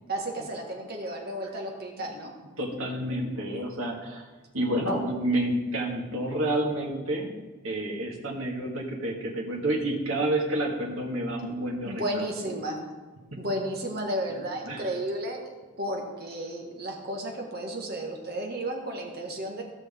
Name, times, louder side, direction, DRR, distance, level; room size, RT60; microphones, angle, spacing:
voice 1, 0.1-2.3 3.1-3.3 11.4-11.6 11.8-12.8 13.4-15.4 15.8-19.6, right 1 dB, 50° right, 1 dB, 1.7 m, -33 dB
voice 2, 2.6-4.3 4.5-7.3 7.6-12.3 13.3-13.4 14.7-14.8, right 1 dB, 85° right, 0 dB, 2.0 m, -29 dB
16.0 x 6.3 x 3.7 m, 1.2 s
head